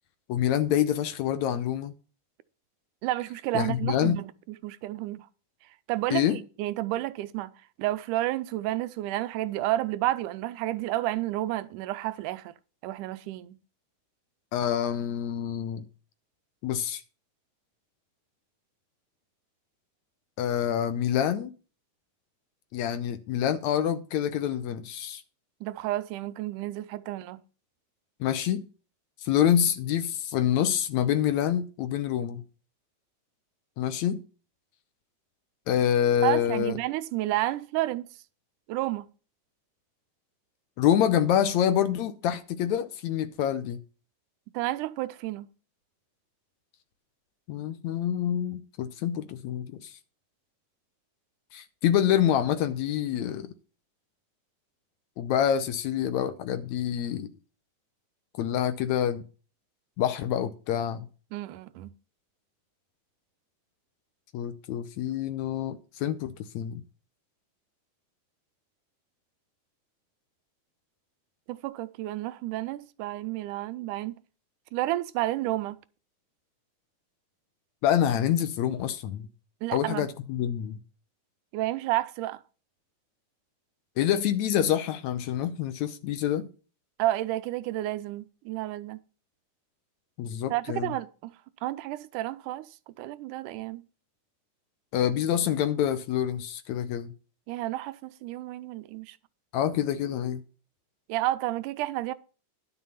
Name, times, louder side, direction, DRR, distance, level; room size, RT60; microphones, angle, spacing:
voice 1, 0.3-1.9 3.5-4.2 6.1-6.4 14.5-15.9 16.6-17.0 20.4-21.5 22.7-25.2 28.2-28.6 29.2-32.4 33.8-34.2 35.7-36.8 40.8-43.8 47.5-50.0 51.5-53.5 55.2-57.3 58.4-59.2 60.0-61.1 64.3-66.8 77.8-79.3 79.7-80.8 84.0-86.5 90.2-90.9 94.9-97.1 99.5-100.4, left 10 dB, 75° left, 1.9 m, -26 dB
voice 2, 3.0-4.3 4.6-5.3 5.9-7.5 7.8-12.5 12.8-13.6 25.6-27.4 36.2-38.1 38.7-39.1 44.5-45.5 61.3-61.9 71.5-74.2 74.7-75.8 79.6-80.1 81.5-82.4 87.0-89.0 90.5-91.3 91.6-92.7 93.0-93.8 97.5-99.2 101.1-102.1, right 16 dB, 85° right, 2.1 m, -31 dB
11.0 x 6.2 x 5.6 m
omnidirectional pair, 3.6 m